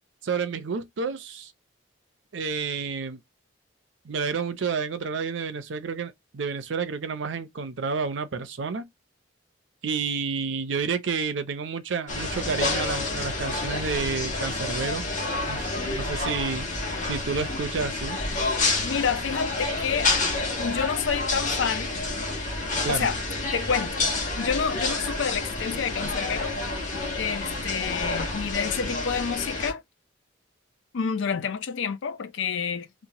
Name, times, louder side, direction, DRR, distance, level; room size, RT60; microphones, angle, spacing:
voice 1, 0.2-1.5 2.3-3.2 4.0-8.9 9.8-15.0 15.5-16.7 17.0-18.2 22.8-23.1, right 5 dB, 75° right, 0.5 m, -30 dB
sound 1, 12.1-29.7, left 2 dB, 40° left, 1.1 m, -29 dB
voice 2, 18.8-20.2 20.6-22.0 22.9-23.2 23.5-24.1 24.4-26.9 27.2-29.8 30.9-32.9, left 6 dB, 80° left, 0.4 m, -29 dB
2.9 x 2.1 x 2.7 m
head